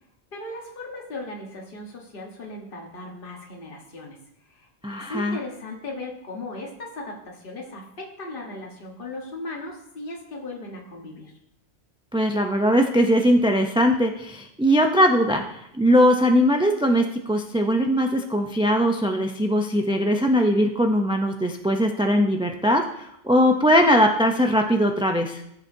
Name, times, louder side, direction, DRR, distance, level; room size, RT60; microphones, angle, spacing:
voice 1, 0.3-4.2 4.5-11.3, left 2 dB, 55° left, -1 dB, 1.5 m, -37 dB
voice 2, 4.8-5.4 12.1-25.4, equal, 10° right, 3 dB, 0.4 m, -20 dB
14.5 x 6.9 x 2.7 m, 0.78 s
omnidirectional pair, 1.1 m